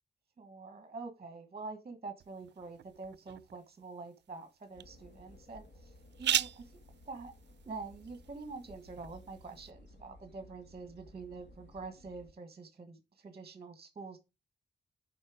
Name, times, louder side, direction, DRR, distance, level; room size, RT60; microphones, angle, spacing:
voice 1, 0.4-6.7 7.1-7.3 7.6-14.2, right 4 dB, 35° right, 1.4 m, -46 dB
sound 1, 2.2-9.7, right 11 dB, 80° right, 0.4 m, -40 dB
sound 2, 4.7-12.3, left 1 dB, 85° left, 1.9 m, -57 dB
8.6 x 5.3 x 5.0 m
wide cardioid pair, 160°, 18 cm